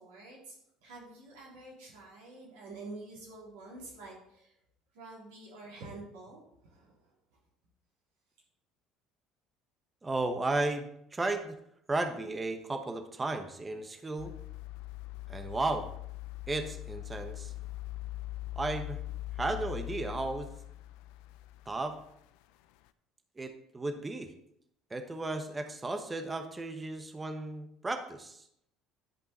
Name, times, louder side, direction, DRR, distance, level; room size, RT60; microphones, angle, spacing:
voice 1, 0.0-4.5 4.9-7.1, right 2 dB, 80° right, -4 dB, 3.6 m, -48 dB
voice 2, 10.0-11.5 11.9-14.4 15.3-15.9 16.5-17.5 18.6-19.0 19.3-20.5 21.7-22.0 23.4-24.3 24.9-28.4, right 2 dB, 20° right, 6 dB, 1.1 m, -34 dB
sound 1, 14.2-22.4 22.9-23.0, left 16 dB, 75° left, 0.4 m, -42 dB
11.0 x 5.4 x 4.2 m, 0.74 s
hypercardioid pair, 70°, 0 cm